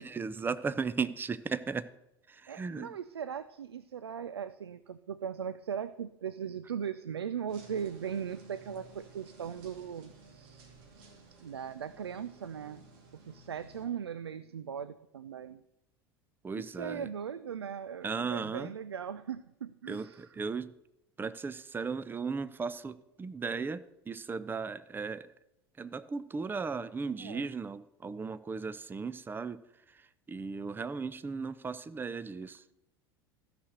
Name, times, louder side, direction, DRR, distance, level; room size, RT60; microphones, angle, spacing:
voice 1, 0.0-1.9 2.3-2.9 16.4-17.1 18.0-18.7 19.9-20.7 21.2-25.3 25.8-29.6 29.9-30.0 30.3-32.6, right 5 dB, 15° right, 16 dB, 0.6 m, -36 dB
voice 2, 2.5-10.6 11.4-12.8 13.3-15.6 16.5-20.3 27.2-27.5, right 8 dB, 85° right, 15 dB, 0.4 m, -39 dB
sound 1, 7.5-13.9, right 3 dB, 60° right, 2.5 m, -55 dB
14.5 x 6.0 x 6.6 m, 0.89 s
figure-of-eight pair, 75°, 13 cm